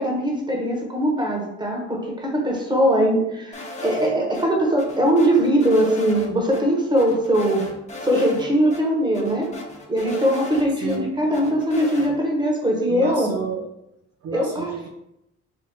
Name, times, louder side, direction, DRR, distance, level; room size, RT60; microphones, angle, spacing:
voice 1, 0.0-7.7 8.0-9.5 9.9-13.3 14.3-14.7, right 1 dB, 15° right, 0 dB, 1.1 m, -21 dB
sound 1, 3.5-4.4 4.8-6.3 6.5-6.6 7.0-8.5 8.7-8.8 9.1-11.0 11.3-12.1, left 2 dB, 25° left, 1.0 m, -36 dB
voice 2, 10.8-11.1 12.8-13.7 14.2-14.9, right 5 dB, 55° right, 2 dB, 0.5 m, -31 dB
3.6 x 2.5 x 4.1 m, 0.83 s
cardioid pair, 90°, 30 cm